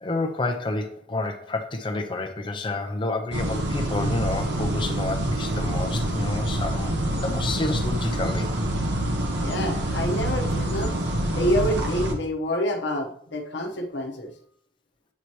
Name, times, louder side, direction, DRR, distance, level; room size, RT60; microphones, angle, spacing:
voice 1, 0.0-8.5, left 2 dB, 25° left, 5 dB, 0.6 m, -29 dB
sound 1, 3.3-12.1, right 1 dB, 75° right, 1.0 m, -26 dB
voice 2, 9.4-11.0 11.3-14.3, equal, 75° left, 3 dB, 1.0 m, -27 dB
8.2 x 2.9 x 4.6 m, 0.64 s
head